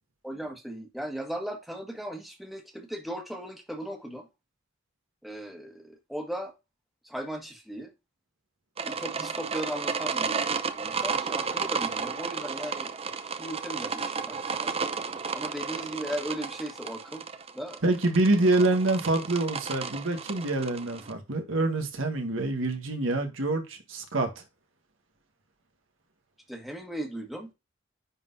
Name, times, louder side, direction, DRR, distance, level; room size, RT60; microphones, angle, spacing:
voice 1, 0.2-4.3 5.2-6.5 7.0-7.9 8.8-10.4 10.7-12.9 13.2-14.7 15.3-17.3 17.5-17.8 26.5-27.5, right 1 dB, ahead, 1.4 m, -37 dB
sound 1, 8.8-21.1, right 5 dB, 30° right, 0.6 m, -33 dB
voice 2, 17.8-24.3, right 2 dB, 80° right, 1.7 m, -26 dB
10.0 x 3.8 x 2.7 m
head